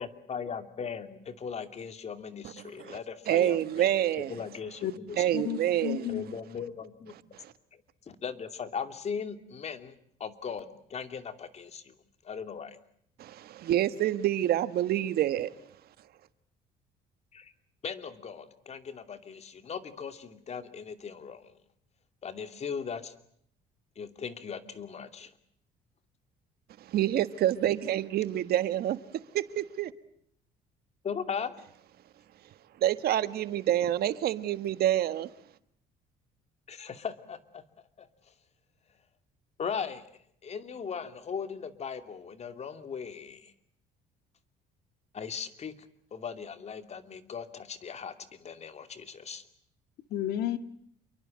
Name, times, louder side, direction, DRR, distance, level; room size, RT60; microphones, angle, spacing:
voice 1, 0.0-5.2 6.1-7.2 7.7-9.9 10.2-11.9 12.2-12.8 17.3-17.5 17.8-21.5 22.2-23.1 24.0-25.3 31.0-31.6 36.7-37.6 38.0-38.3 39.6-43.5 45.1-45.7 46.1-49.4, left 6 dB, 40° left, 2.7 m, -38 dB
voice 2, 3.3-4.3 5.2-6.1 7.3-7.5 13.2-15.5 26.9-29.0 29.3-29.9 32.8-35.3, right 12 dB, 65° right, 1.6 m, -27 dB
voice 3, 5.3-6.2 50.1-50.6, left 12 dB, 70° left, 2.2 m, -32 dB
28.0 x 23.5 x 7.7 m
cardioid pair, 110°, 17 cm